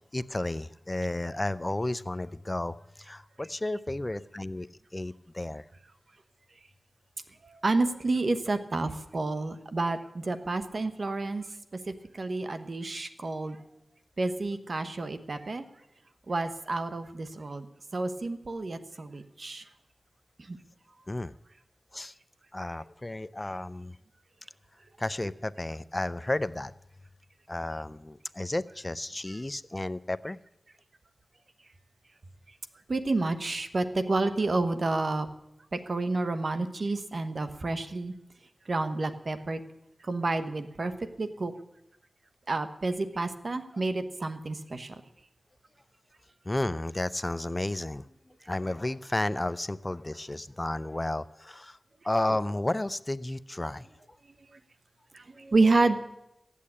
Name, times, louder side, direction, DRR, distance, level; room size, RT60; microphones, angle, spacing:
voice 1, 0.1-4.7 4.9-5.6 21.1-21.3 21.9-22.1 22.5-23.9 25.0-26.7 27.5-30.4 46.5-48.0 48.5-51.8 52.0-53.9, left 1 dB, 25° left, 16 dB, 0.5 m, -32 dB
voice 2, 7.4-11.4 12.1-13.6 14.2-15.6 16.3-17.7 17.9-19.6 20.5-20.6 32.9-35.3 35.7-38.1 38.7-39.6 40.0-40.9 41.2-41.5 42.5-44.9 55.1-56.0, right 3 dB, 65° right, 10 dB, 1.1 m, -29 dB
14.5 x 8.5 x 8.6 m, 0.87 s
cardioid pair, 50°, 0 cm